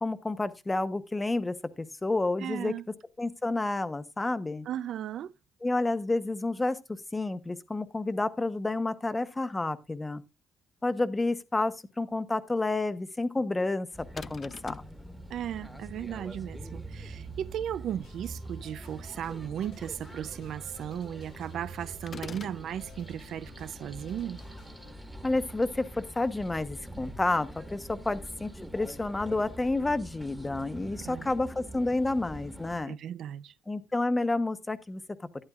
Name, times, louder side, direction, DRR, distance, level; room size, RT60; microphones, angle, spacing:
voice 1, 0.0-2.7 3.2-4.7 5.6-10.2 10.8-13.9 14.1-14.7 25.2-33.0 33.7-35.0, left 2 dB, 15° left, 0.9 m, -30 dB
voice 2, 2.4-2.9 4.7-5.3 15.3-24.4 31.0-31.3 32.9-33.5, right 10 dB, 65° right, 0.5 m, -36 dB
sound 1, 13.9-32.8, right 1 dB, 5° right, 1.4 m, -44 dB
sound 2, 14.2-15.0 22.1-22.6, left 6 dB, 35° left, 0.4 m, -42 dB
sound 3, 18.0-24.9, left 7 dB, 80° left, 2.5 m, -56 dB
12.0 x 11.5 x 2.4 m
cardioid pair, 125°, 0 cm